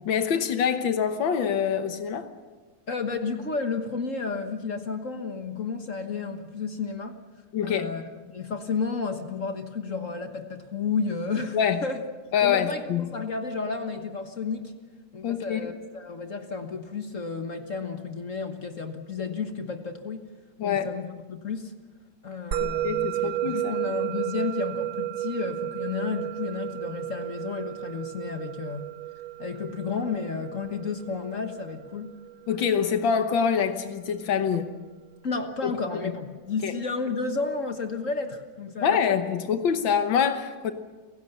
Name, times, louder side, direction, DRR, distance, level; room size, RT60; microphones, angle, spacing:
voice 1, 0.1-2.3 7.5-7.9 11.5-11.8 12.3-13.1 15.2-15.7 20.6-20.9 22.6-23.7 32.5-34.7 35.6-35.7 36.0-36.1 36.6-36.7 38.8-40.7, left 7 dB, 85° left, 8 dB, 1.9 m, -25 dB
voice 2, 2.9-7.2 7.6-12.0 12.4-14.7 15.1-20.2 20.6-21.7 22.2-28.9 29.4-32.1 35.2-39.2 39.5-39.6, left 4 dB, 45° left, 6 dB, 1.5 m, -32 dB
Musical instrument, 22.5-33.1, right 14 dB, 60° right, 1.5 m, -33 dB
29.0 x 16.5 x 6.7 m, 1.4 s
omnidirectional pair, 2.0 m